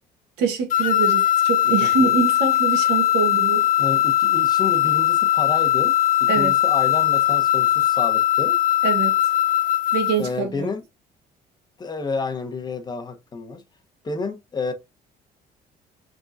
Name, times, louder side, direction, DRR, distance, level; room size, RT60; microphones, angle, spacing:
voice 1, 0.4-3.7 6.3-6.5 8.8-9.1 9.9-10.7, right 6 dB, 90° right, 1.2 m, -24 dB
sound 1, 0.7-10.3, left 13 dB, 55° left, 0.5 m, -20 dB
voice 2, 1.8-2.1 3.8-5.9 6.2-8.6 10.2-10.8 11.8-13.6 14.0-14.7, left 4 dB, 25° left, 0.9 m, -30 dB
3.7 x 3.7 x 2.6 m
cardioid pair, 110°, 17 cm